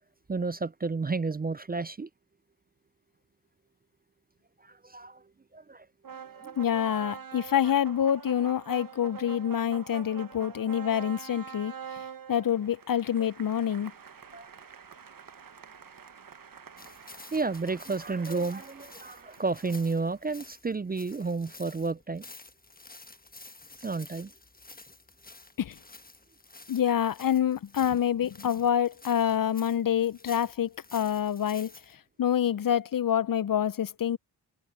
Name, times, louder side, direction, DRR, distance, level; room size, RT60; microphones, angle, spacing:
voice 1, 0.3-2.1 4.8-5.2 5.5-5.9 6.3-6.5 13.2-13.3 14.3-14.5 17.3-22.2 23.8-24.3, right 4 dB, 25° right, 0.4 m, -31 dB
sound 1, 6.0-20.2, right 7 dB, 50° right, 1.1 m, -45 dB
voice 2, 6.6-11.7 12.3-13.9 25.6-25.8 26.7-31.7 32.2-34.2, left 9 dB, 55° left, 0.6 m, -27 dB
sound 2, 16.8-31.9, left 3 dB, 20° left, 1.3 m, -51 dB
cardioid pair, 40°, 42 cm